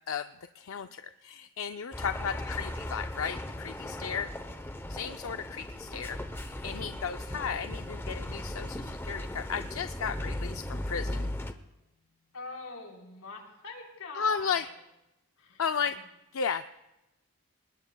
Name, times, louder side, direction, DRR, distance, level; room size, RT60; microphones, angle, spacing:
voice 1, 0.5-4.3 4.9-11.3 14.2-14.6 15.6-16.0 16.3-16.7, left 6 dB, 65° left, 9 dB, 0.4 m, -34 dB
sound 1, 1.9-11.5, left 1 dB, 10° left, 0.7 m, -37 dB
voice 2, 2.3-2.7 4.5-4.6 5.3-5.7 12.3-14.7 15.4-16.0, left 3 dB, 90° left, -1 dB, 4.0 m, -45 dB
sound 2, 9.1-14.3, left 2 dB, 30° left, 2.0 m, -63 dB
27.5 x 20.0 x 2.3 m, 0.95 s
head